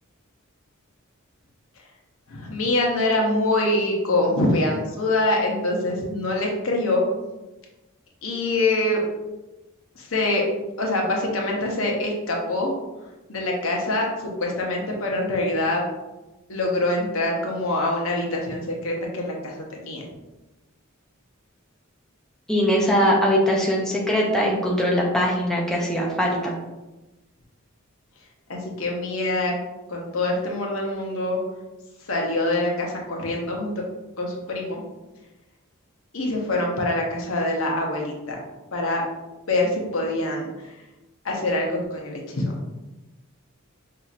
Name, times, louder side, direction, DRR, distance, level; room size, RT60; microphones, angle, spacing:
voice 1, 2.3-7.0 8.2-9.0 9.9-10.4 10.8-12.7 13.3-15.9 16.5-20.1 28.5-29.5 29.9-31.4 32.0-33.7 34.2-34.8 36.1-38.4 38.7-39.0 39.5-40.7 41.2-42.6, left 2 dB, 70° left, -1 dB, 0.9 m, -24 dB
voice 2, 22.5-26.6, equal, 5° left, -3 dB, 0.5 m, -21 dB
5.6 x 2.8 x 2.5 m, 1.1 s
head